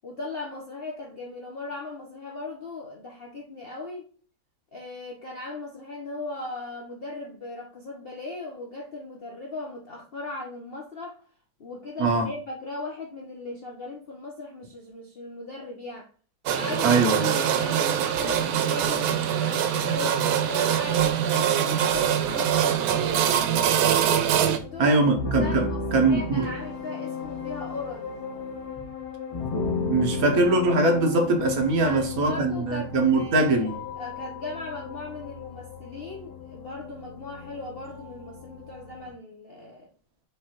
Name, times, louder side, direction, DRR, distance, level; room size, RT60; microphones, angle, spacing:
voice 1, 0.0-4.1 4.7-11.2 11.6-16.1 16.5-23.3 24.2-25.0 25.4-28.1 31.8-39.9, left 2 dB, 75° left, 0.5 m, -38 dB
sound 1, 16.5-24.6, right 9 dB, 85° right, 1.4 m, -23 dB
voice 2, 16.8-17.3 24.8-26.5 29.9-33.8, right 2 dB, 55° right, 1.2 m, -22 dB
sound 2, 23.3-39.1, left 4 dB, 25° left, 0.8 m, -35 dB
5.0 x 3.3 x 2.9 m
omnidirectional pair, 2.2 m